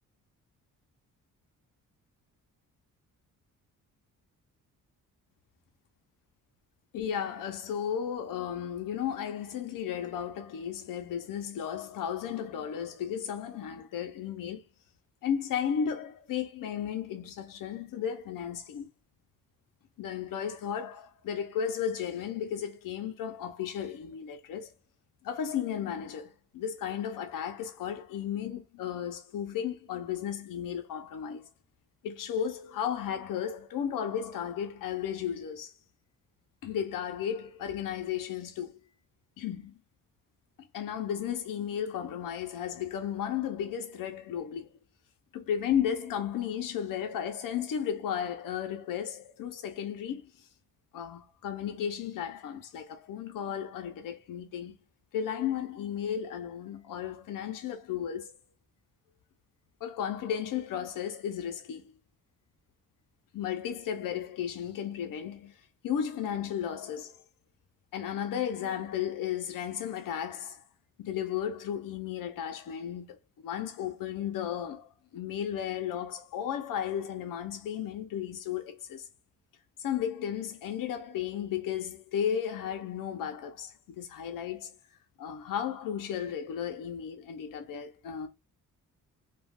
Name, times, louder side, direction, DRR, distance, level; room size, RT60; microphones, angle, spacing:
voice 1, 6.9-14.6 15.2-18.9 20.0-24.7 25.2-31.5 32.0-35.7 36.6-38.7 39.4-39.7 40.7-44.7 45.3-50.3 50.9-54.7 55.1-58.4 59.8-61.8 63.3-65.5 65.8-67.2 67.9-70.6 71.0-73.2 73.4-74.9 75.1-79.0 79.8-84.7 85.2-88.3, left 9 dB, 75° left, 0.8 m, -34 dB
2.4 x 2.4 x 3.4 m
cardioid pair, 100°, 33 cm